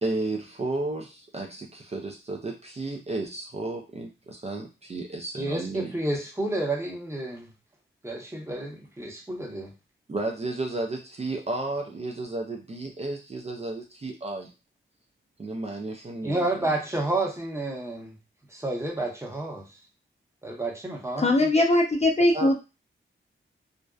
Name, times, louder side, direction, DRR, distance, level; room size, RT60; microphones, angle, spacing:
voice 1, 0.0-5.9 10.1-14.5 15.4-16.7 22.3-22.6, right 2 dB, 30° right, 1 dB, 0.4 m, -33 dB
voice 2, 5.4-7.5 8.0-9.7 16.2-18.1 18.5-19.6 20.4-21.3, right 2 dB, 15° right, 0 dB, 0.8 m, -30 dB
voice 3, 21.2-22.6, left 1 dB, 30° left, 1 dB, 0.5 m, -20 dB
2.5 x 2.1 x 2.3 m, 0.28 s
cardioid pair, 65°, 21 cm